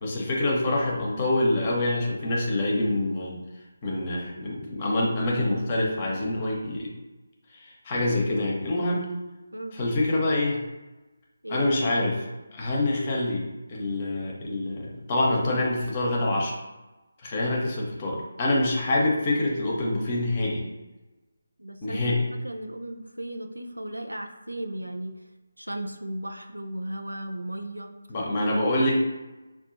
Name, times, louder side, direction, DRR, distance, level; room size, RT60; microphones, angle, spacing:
voice 1, 0.0-3.4 3.8-6.9 7.5-9.1 9.7-10.6 11.5-12.3 12.5-16.5 17.2-20.6 21.8-22.2 28.1-29.0, left 1 dB, 30° left, -2 dB, 0.9 m, -26 dB
voice 2, 21.6-22.0 22.4-25.1 25.6-27.9, right 1 dB, 85° right, 4 dB, 0.5 m, -35 dB
5.3 x 2.4 x 2.6 m, 1.1 s
figure-of-eight pair, 155°, 0 cm